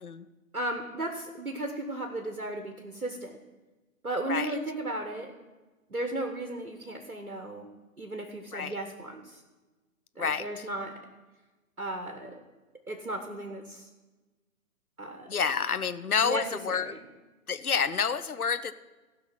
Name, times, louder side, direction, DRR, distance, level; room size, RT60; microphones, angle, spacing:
voice 1, 0.5-3.4 4.0-5.3 5.9-7.7 8.0-9.4 10.2-11.0 11.8-12.4 12.9-13.9 15.0-15.4 16.2-17.0, right 1 dB, 90° right, 4 dB, 1.4 m, -35 dB
voice 2, 15.3-17.0 17.5-18.7, left 6 dB, 80° left, 13 dB, 0.8 m, -28 dB
16.0 x 5.8 x 5.8 m, 1.2 s
figure-of-eight pair, 130°, 43 cm